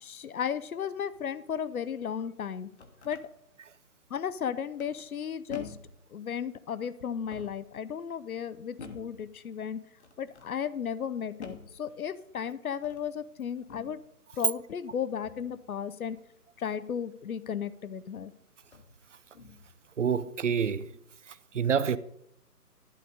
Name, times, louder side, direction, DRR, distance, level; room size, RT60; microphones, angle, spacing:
voice 1, 0.0-2.7 3.0-3.2 4.1-5.8 6.1-9.8 10.2-14.0 14.3-16.2 16.6-18.3, left 8 dB, 65° left, 0.7 m, -34 dB
sound 1, 2.7-3.3 4.8-5.2 5.5-6.0 7.1-7.7 8.8-9.2 10.0-10.5 11.4-11.8 12.7-13.1 13.7-14.0 15.2-15.5 17.7-17.8 18.6-19.0 19.3-19.7, left 5 dB, 45° left, 1.2 m, -47 dB
voice 2, 20.0-20.9 21.5-22.0, right 7 dB, 55° right, 0.5 m, -27 dB
11.5 x 4.0 x 6.6 m
figure-of-eight pair, 160°, 47 cm